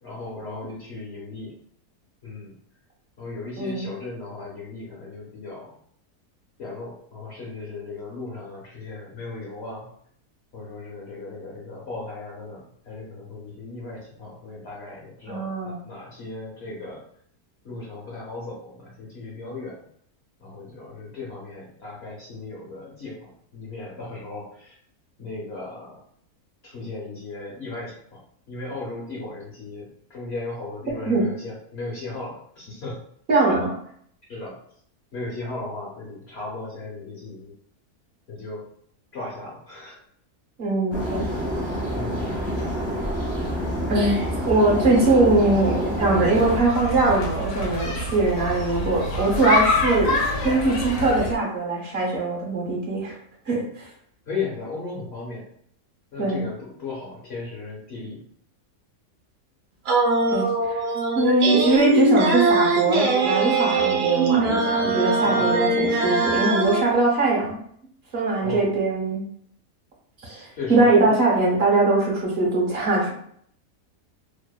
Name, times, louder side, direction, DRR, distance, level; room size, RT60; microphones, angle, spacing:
voice 1, 0.0-1.5 2.2-2.5 3.2-5.8 6.6-9.9 10.5-17.0 17.6-19.8 20.4-24.7 25.2-26.0 26.6-28.2 28.5-33.0 34.3-34.6 35.1-37.5 38.3-38.7 39.1-40.0 41.9-42.4 54.3-55.5 56.1-58.2 65.2-65.5 68.4-68.7 70.6-71.2, left 3 dB, 60° left, -4 dB, 0.7 m, -36 dB
voice 2, 3.6-3.9 15.3-15.8 31.1-31.2 33.3-33.7 40.6-41.2 43.9-53.2 53.5-53.9 56.2-56.4 60.3-60.8 61.1-67.6 68.1-69.2 70.2-73.1, right 2 dB, 50° right, -3 dB, 0.8 m, -21 dB
sound 1, 40.9-46.6, equal, 15° left, 0.5 m, -27 dB
sound 2, 46.3-51.3, left 2 dB, 75° left, 1.1 m, -26 dB
sound 3, 59.9-66.8, right 3 dB, 85° right, 0.5 m, -21 dB
2.8 x 2.1 x 2.2 m, 0.64 s
omnidirectional pair, 1.7 m